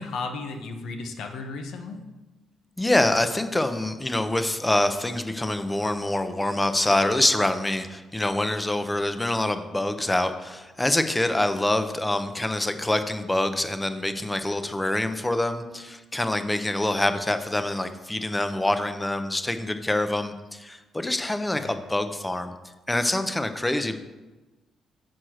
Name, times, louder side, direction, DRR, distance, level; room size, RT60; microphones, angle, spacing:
voice 1, 0.0-2.1 21.5-21.7, left 3 dB, 75° left, 5 dB, 0.9 m, -34 dB
voice 2, 2.8-22.5 22.9-23.9, left 1 dB, 10° left, 9 dB, 0.6 m, -25 dB
6.3 x 4.4 x 6.4 m, 1.2 s
cardioid pair, 90°, 0 cm